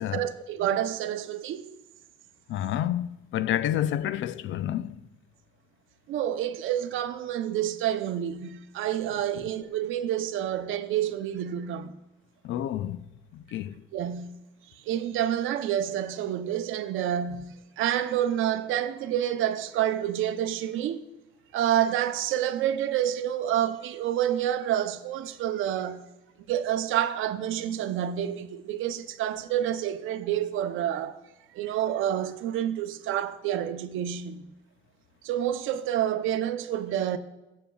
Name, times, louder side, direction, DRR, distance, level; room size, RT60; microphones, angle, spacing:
voice 1, 0.0-1.7 6.1-11.9 13.9-14.4 14.9-21.0 21.5-26.1 26.5-31.2 31.5-34.5 35.2-37.2, right 11 dB, 85° right, 0.6 m, -28 dB
voice 2, 2.5-5.0 12.4-13.0 13.3-13.8, left 11 dB, 75° left, 0.4 m, -29 dB
17.5 x 7.2 x 2.3 m
cardioid pair, 90°, 20 cm